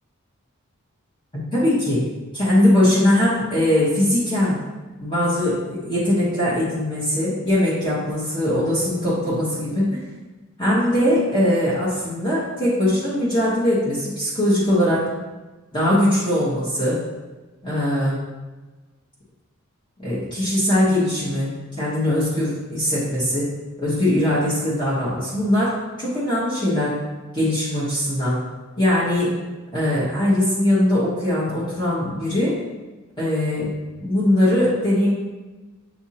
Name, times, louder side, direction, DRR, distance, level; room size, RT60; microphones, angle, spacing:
voice 1, 1.5-2.0 2.3-4.6 5.0-10.0 10.6-15.1 15.7-17.0 17.6-18.2 20.0-23.5 23.8-27.0 27.3-28.4 28.8-29.3 29.7-32.6 33.2-33.7 34.0-35.1, left 1 dB, 25° left, -9 dB, 1.0 m, -21 dB
7.2 x 2.6 x 2.8 m, 1.2 s
head